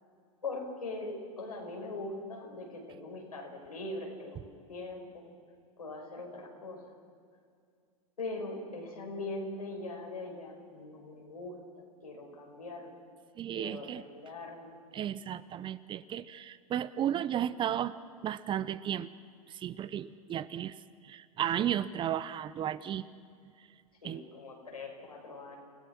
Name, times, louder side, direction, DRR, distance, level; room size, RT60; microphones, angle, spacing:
voice 1, 0.4-5.2 5.8-6.8 8.2-11.6 12.0-12.9 13.5-14.8 24.0-25.6, left 2 dB, 90° left, 0 dB, 5.3 m, -41 dB
voice 2, 13.4-14.0 14.9-17.9 18.2-19.1 19.5-20.7 21.0-23.1 24.0-24.2, right 10 dB, 25° right, 16 dB, 0.7 m, -34 dB
29.5 x 17.0 x 6.1 m, 2.3 s
hypercardioid pair, 100°, 19 cm